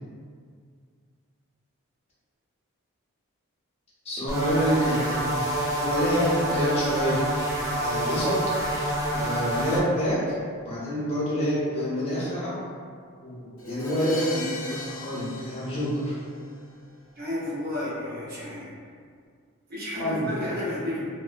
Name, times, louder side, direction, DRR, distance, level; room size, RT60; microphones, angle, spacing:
voice 1, 4.0-5.4 5.8-7.3 7.6-8.4 9.1-10.3 10.6-12.6 13.2-16.2 20.0-20.3, equal, 30° left, -10 dB, 0.8 m, -27 dB
sound 1, 4.3-9.8, right 1 dB, 15° right, 0.4 m, -27 dB
Crash cymbal, 13.6-16.5, left 1 dB, 70° left, 0.5 m, -37 dB
voice 2, 17.2-18.7 19.7-21.0, left 1 dB, 45° right, -9 dB, 0.8 m, -32 dB
2.8 x 2.2 x 2.3 m, 2.1 s
head